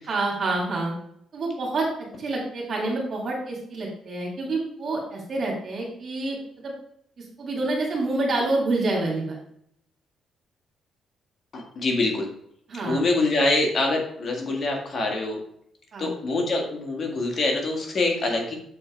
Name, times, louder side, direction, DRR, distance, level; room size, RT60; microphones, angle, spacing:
voice 1, 0.1-0.9 1.3-6.7 7.2-9.4 12.7-13.0 15.9-16.1, right 2 dB, 55° right, -3 dB, 2.7 m, -27 dB
voice 2, 11.5-12.3 12.8-15.4 16.0-18.6, left 2 dB, 45° left, 1 dB, 1.8 m, -25 dB
7.7 x 4.4 x 4.7 m, 0.71 s
cardioid pair, 90°, 0 cm